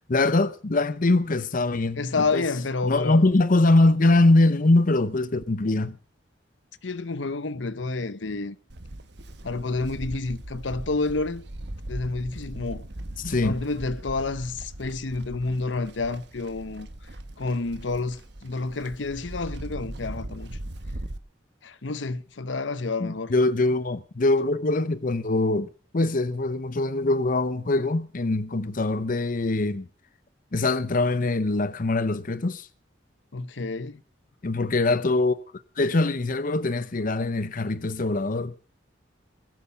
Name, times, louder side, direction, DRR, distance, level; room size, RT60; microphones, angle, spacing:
voice 1, 0.1-2.4 2.8-6.0 13.2-13.6 23.0-25.7 25.9-29.9 30.5-32.7 34.4-35.4 35.8-38.5, left 2 dB, 50° left, 0.8 m, -23 dB
voice 2, 2.0-3.3 6.8-8.6 9.4-11.4 11.9-12.8 13.4-16.9 17.4-20.5 21.6-23.3 33.3-34.0, left 3 dB, 85° left, 0.9 m, -29 dB
Livestock farm animals working animals, 8.7-21.2, right 1 dB, 65° right, 1.3 m, -39 dB
21.0 x 8.5 x 5.5 m
head